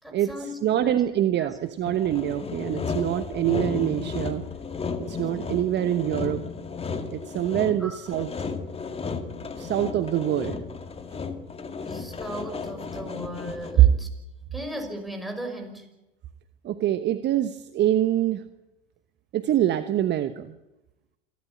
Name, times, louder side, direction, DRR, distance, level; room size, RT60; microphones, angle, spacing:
voice 1, 0.0-1.1 1.4-1.5 7.8-8.0 11.9-14.1 14.5-15.9, equal, ahead, 2 dB, 5.8 m, -37 dB
voice 2, 0.6-4.4 5.0-6.4 7.1-8.3 9.6-10.6 13.8-13.9 16.6-18.4 19.3-20.5, right 12 dB, 35° right, 10 dB, 1.2 m, -24 dB
Sawing, 1.9-13.9, left 5 dB, 20° left, 2.1 m, -34 dB
27.5 x 13.0 x 9.6 m, 0.95 s
hypercardioid pair, 90°, 29 cm